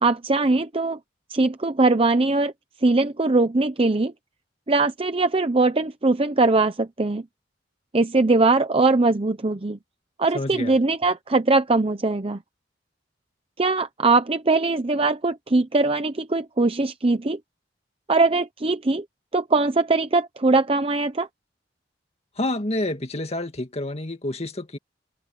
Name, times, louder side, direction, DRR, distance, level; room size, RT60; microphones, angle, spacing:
voice 1, 0.0-1.0 1.3-2.5 2.8-4.1 4.7-7.2 7.9-9.8 10.2-12.4 13.6-17.4 18.1-19.0 19.3-21.3, right 3 dB, 30° right, 0.8 m, -21 dB
voice 2, 10.3-10.7 22.4-24.8, left 1 dB, 35° left, 2.2 m, -28 dB
head